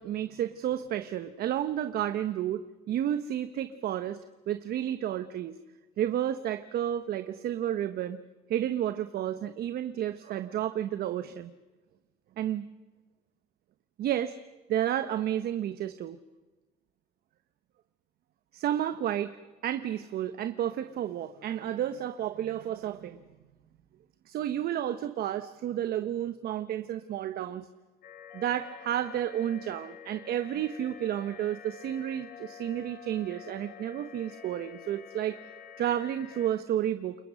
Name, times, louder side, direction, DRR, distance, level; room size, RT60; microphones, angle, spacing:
voice 1, 0.0-4.2 4.5-5.6 6.0-8.2 8.5-11.5 12.4-12.6 14.0-14.4 14.7-16.2 18.5-19.4 19.6-23.2 24.3-27.7 28.3-35.4 35.8-37.2, right 11 dB, 65° right, 11 dB, 1.1 m, -31 dB
sound 1, 28.0-36.5, left 8 dB, 65° left, 4.5 m, -48 dB
29.0 x 22.5 x 6.4 m, 1.2 s
cardioid pair, 110°, 17 cm